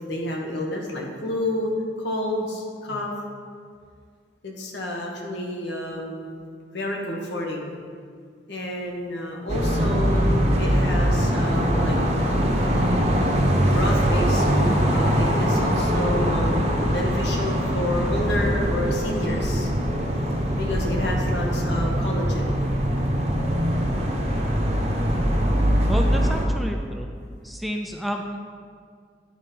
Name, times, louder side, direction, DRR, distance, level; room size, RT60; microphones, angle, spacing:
voice 1, 0.0-1.7 2.0-3.1 4.4-6.3 6.7-7.8 8.5-12.0 13.7-19.7 20.6-22.6, left 1 dB, 75° left, -1 dB, 1.5 m, -29 dB
sound 1, 9.5-26.5, equal, 35° right, 0.9 m, -22 dB
voice 2, 25.9-27.1 27.4-28.4, equal, ahead, 2 dB, 0.4 m, -31 dB
10.0 x 4.3 x 5.3 m, 2.1 s
head